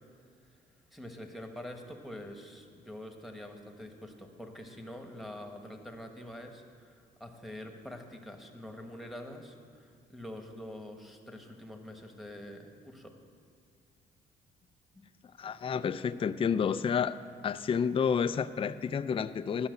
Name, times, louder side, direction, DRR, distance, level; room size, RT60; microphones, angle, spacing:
voice 1, 0.9-13.1, left 1 dB, ahead, 3 dB, 1.2 m, -45 dB
voice 2, 15.4-17.2 17.4-19.7, left 7 dB, 30° left, 12 dB, 0.3 m, -30 dB
11.5 x 5.7 x 8.0 m, 2.4 s
cardioid pair, 90°, 20 cm